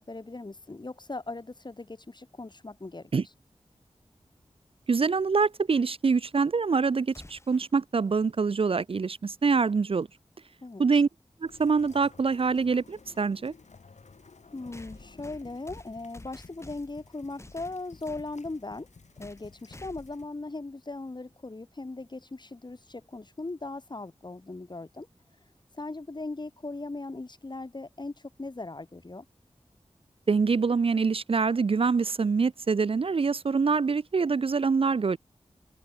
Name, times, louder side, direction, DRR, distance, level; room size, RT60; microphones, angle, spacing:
voice 1, 0.0-3.1 10.6-11.0 14.5-18.9 19.2-25.1 25.7-29.3, left 2 dB, 40° left, 1.9 m, -39 dB
voice 2, 4.9-10.1 10.8-11.1 11.4-13.5 30.3-35.2, right 5 dB, 55° right, 0.5 m, -25 dB
sound 1, 7.1-7.7 9.8-9.9 11.0-11.1 14.7-17.0 17.4-18.3 19.2-19.5 19.7-20.2, left 1 dB, 25° left, 3.0 m, -49 dB
sound 2, 11.5-20.3, left 4 dB, 85° left, 7.0 m, -54 dB
wide cardioid pair, 55°, 12 cm